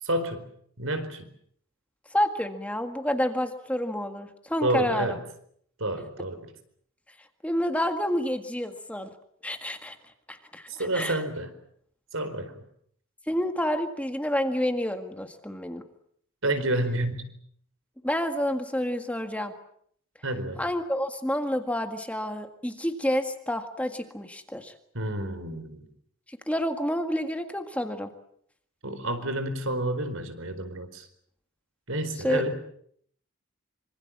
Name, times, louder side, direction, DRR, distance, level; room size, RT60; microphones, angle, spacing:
voice 1, 0.0-0.5 0.8-1.3 4.6-5.2 5.8-6.5 10.7-11.5 12.1-12.5 16.4-17.3 20.2-20.6 24.9-25.8 28.8-31.1 31.9-32.5, right 1 dB, 70° right, 10 dB, 4.4 m, -29 dB
voice 2, 2.1-5.2 7.4-9.1 9.4-10.0 10.3-11.2 13.3-15.8 18.0-19.5 20.6-24.7 26.3-28.1 32.2-32.4, equal, 5° left, 6 dB, 1.8 m, -29 dB
26.0 x 25.5 x 7.5 m, 0.67 s
head